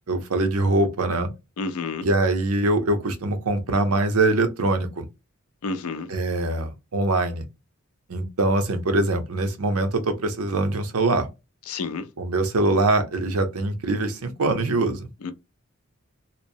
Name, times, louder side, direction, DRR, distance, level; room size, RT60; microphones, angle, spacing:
voice 1, 0.1-1.3 2.0-5.1 6.1-7.5 8.1-11.3 12.2-15.1, right 2 dB, 80° right, 0.7 m, -23 dB
voice 2, 1.6-2.1 5.6-6.1 11.7-12.1 15.2-15.3, left 4 dB, 80° left, 0.5 m, -30 dB
2.9 x 2.0 x 2.6 m
head